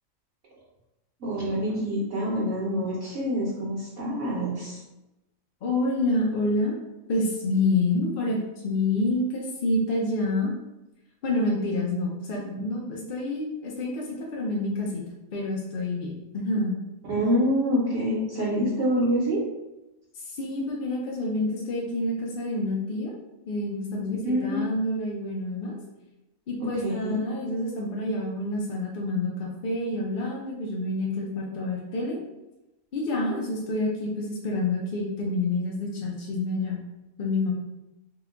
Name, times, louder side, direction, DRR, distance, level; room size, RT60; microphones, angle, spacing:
voice 1, 1.2-4.8 17.1-19.4 24.0-24.6 26.6-27.2, equal, 65° right, -5 dB, 1.0 m, -26 dB
voice 2, 5.6-6.7 7.1-10.5 11.2-15.0 15.3-16.8 20.1-23.1 23.5-25.8 26.5-32.2 32.9-36.8 37.2-37.5, left 2 dB, 55° left, -3 dB, 0.6 m, -28 dB
2.8 x 2.2 x 3.7 m, 0.97 s
omnidirectional pair, 1.4 m